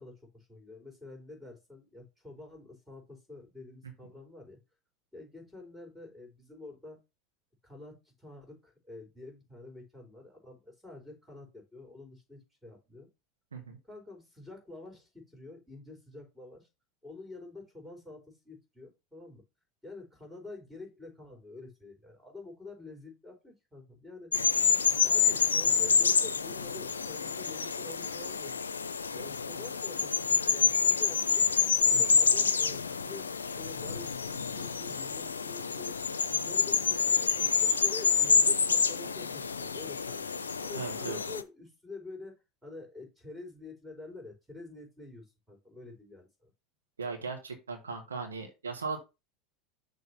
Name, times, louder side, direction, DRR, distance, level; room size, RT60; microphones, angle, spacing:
voice 1, 0.0-4.6 5.1-7.0 7.6-13.1 13.8-16.7 17.0-19.4 19.8-24.3 25.0-28.5 29.1-31.4 31.8-33.3 33.5-35.9 36.3-40.2 40.6-46.5, left 3 dB, 5° right, 3 dB, 4.3 m, -48 dB
sound 1, 24.3-41.4, left 5 dB, 85° left, 0.4 m, -28 dB
voice 2, 40.7-41.2 47.0-49.0, right 4 dB, 85° right, 3 dB, 1.4 m, -37 dB
6.5 x 3.5 x 5.7 m, 0.25 s
hypercardioid pair, 80°, 0 cm